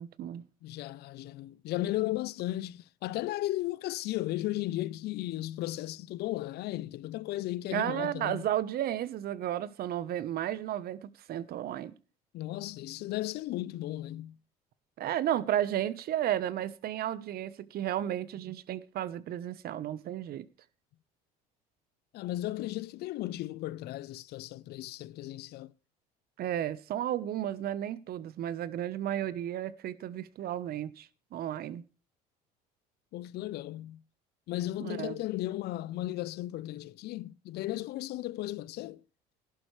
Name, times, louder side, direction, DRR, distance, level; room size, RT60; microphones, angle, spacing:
voice 1, 0.0-0.4 7.7-11.9 15.0-20.5 26.4-31.8 34.8-35.2, right 11 dB, 55° right, 1.1 m, -33 dB
voice 2, 0.6-8.4 12.3-14.4 22.1-25.7 33.1-34.0 34.5-39.0, left 16 dB, 60° left, 0.7 m, -35 dB
17.5 x 11.0 x 3.3 m
supercardioid pair, 80°, 18 cm